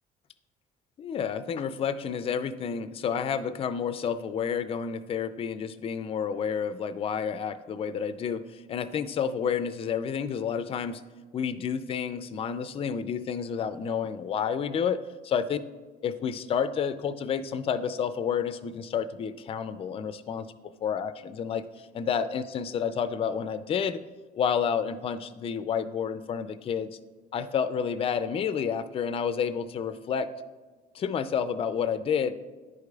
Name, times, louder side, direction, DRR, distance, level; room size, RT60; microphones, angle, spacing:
voice 1, 1.0-11.0 11.3-15.6 16.0-20.5 20.8-24.0 24.4-26.9 27.3-30.3 30.9-32.3, left 7 dB, 35° left, 11 dB, 0.4 m, -30 dB
10.5 x 4.8 x 2.3 m, 1.3 s
cardioid pair, 110°, 17 cm